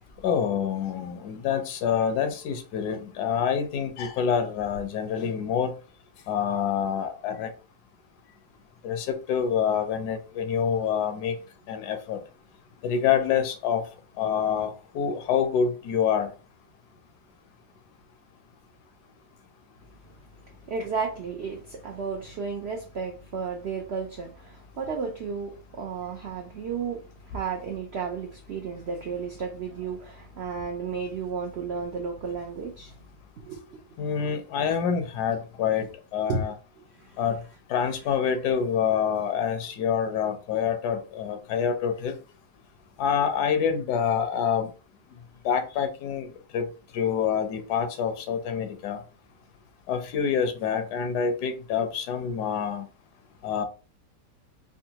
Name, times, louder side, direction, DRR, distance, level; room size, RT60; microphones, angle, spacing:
voice 1, 0.2-5.7 6.3-7.5 8.8-11.4 11.7-12.2 12.8-13.8 14.2-16.3 34.0-36.5 37.2-37.4 37.7-42.1 43.0-44.7 45.4-46.3 46.5-46.7 46.9-49.0 49.9-52.9 53.4-53.6, left 7 dB, 75° left, 1.2 m, -26 dB
voice 2, 20.7-32.9 33.4-33.6 36.3-36.4 37.0-37.1, right 5 dB, 75° right, 0.6 m, -33 dB
3.7 x 2.2 x 2.8 m
omnidirectional pair, 1.8 m